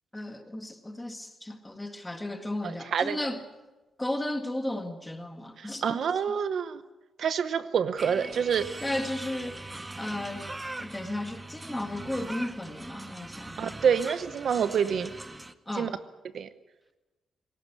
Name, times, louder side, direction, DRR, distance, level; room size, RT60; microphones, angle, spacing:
voice 1, 0.1-3.4 4.0-6.0 8.8-9.7 10.0-10.5 10.8-13.8 15.7-15.9, left 1 dB, 10° left, 6 dB, 1.8 m, -34 dB
voice 2, 2.6-3.2 5.6-6.8 7.2-8.7 13.6-15.1 15.7-15.9 16.3-16.5, right 7 dB, 55° right, 12 dB, 0.9 m, -27 dB
sound 1, 8.0-15.5, right 2 dB, 10° right, 0.8 m, -41 dB
20.0 x 18.0 x 9.9 m, 1.1 s
wide cardioid pair, 170°, 0 cm